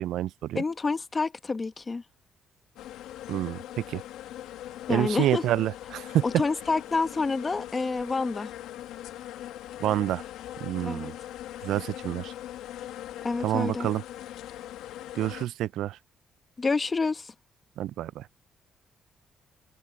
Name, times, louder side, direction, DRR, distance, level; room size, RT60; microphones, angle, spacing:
voice 1, 0.0-0.6 3.3-4.0 4.9-6.4 9.8-10.2 10.6-11.1 11.6-12.3 13.4-14.0 15.2-16.0 17.8-18.3, right 13 dB, 80° right, 0.4 m, -28 dB
voice 2, 0.5-2.0 4.9-5.4 6.2-8.5 10.8-11.1 13.2-13.9 16.6-17.3, left 4 dB, 30° left, 1.4 m, -28 dB
sound 1, 2.8-15.5, left 12 dB, 90° left, 1.5 m, -41 dB
open air
cardioid pair, 90°, 0 cm